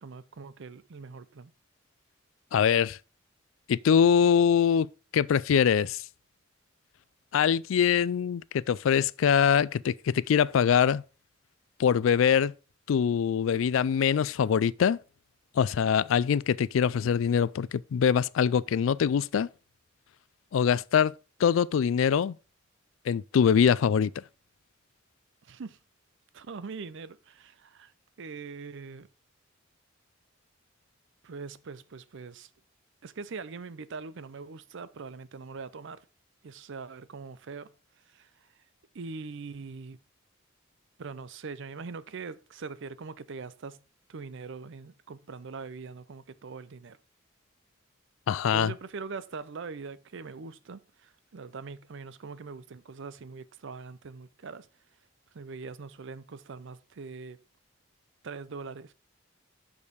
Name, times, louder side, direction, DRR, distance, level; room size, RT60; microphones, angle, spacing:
voice 1, 0.0-1.5 25.4-25.8 26.3-27.9 28.2-29.1 31.2-32.5 33.0-36.0 36.4-37.7 38.1-38.3 38.9-40.0 41.0-43.8 44.1-47.0 48.5-54.7 55.3-57.4 58.2-58.9, right 4 dB, 65° right, 0.5 m, -42 dB
voice 2, 2.5-3.0 3.7-4.9 5.1-6.0 7.3-11.0 11.8-12.5 12.9-15.0 15.6-19.5 20.5-21.1 21.4-22.4 23.1-24.2 48.3-48.7, left 7 dB, 75° left, 0.3 m, -23 dB
6.4 x 5.4 x 5.1 m
head